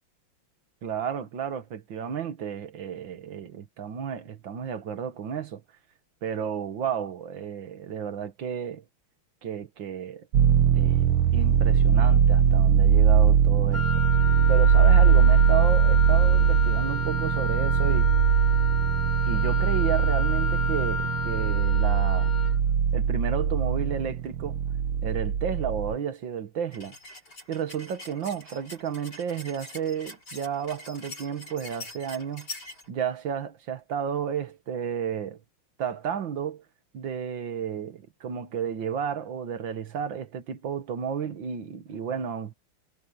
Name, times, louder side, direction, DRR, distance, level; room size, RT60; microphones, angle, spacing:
voice 1, 0.8-5.6 6.2-8.8 9.4-10.3 10.7-11.0 11.3-14.0 14.5-18.1 19.3-22.3 22.9-24.6 25.0-27.0 27.5-32.5 32.9-35.4 35.8-36.6 36.9-42.5, right 8 dB, 65° right, 2.2 m, -32 dB
sound 1, 10.3-26.0, right 7 dB, 90° right, 2.1 m, -21 dB
Wind instrument woodwind instrument, 13.7-22.6, left 5 dB, 5° right, 2.3 m, -33 dB
sound 2, 26.7-32.9, left 2 dB, 50° left, 8.5 m, -44 dB
omnidirectional pair, 2.3 m